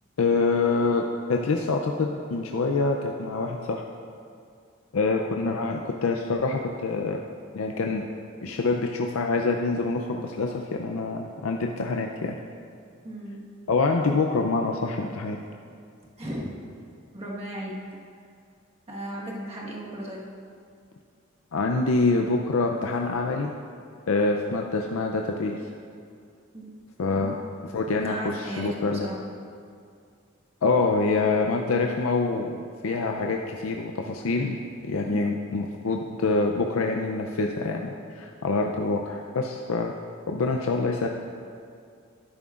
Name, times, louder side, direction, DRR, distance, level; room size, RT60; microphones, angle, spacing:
voice 1, 0.2-3.8 4.9-7.2 7.5-8.0 8.4-12.4 13.7-15.4 21.5-23.5 24.1-25.6 27.0-27.4 27.7-29.1 30.6-32.6 32.8-39.9 40.3-41.1, left 3 dB, 85° left, 2 dB, 0.5 m, -26 dB
voice 2, 13.0-13.4 16.2-16.5 17.1-17.7 18.9-20.2 26.5-26.7 27.1-27.4 28.0-29.2 35.1-35.3, right 1 dB, 30° right, -4 dB, 1.5 m, -35 dB
12.0 x 11.0 x 2.5 m, 2.3 s
head